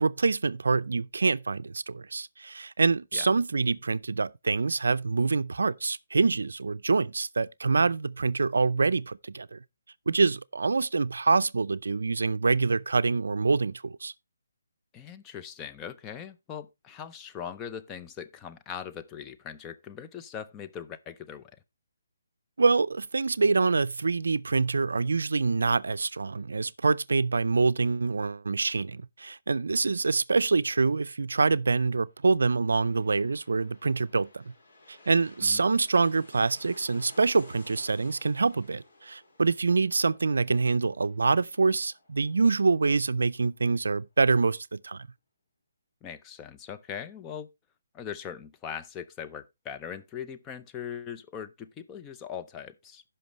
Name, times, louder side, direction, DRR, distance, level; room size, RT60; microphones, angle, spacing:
voice 1, 0.0-9.6 10.1-14.1 22.6-34.4 34.9-45.1, right 4 dB, 80° right, 0.4 m, -25 dB
voice 2, 14.9-21.5 35.4-35.6 46.0-47.5 47.9-53.0, left 8 dB, 15° left, 0.5 m, -40 dB
sound 1, 32.4-43.6 44.0-44.1, left 2 dB, 50° left, 4.2 m, -56 dB
15.5 x 5.7 x 3.0 m
hypercardioid pair, 155°, 0 cm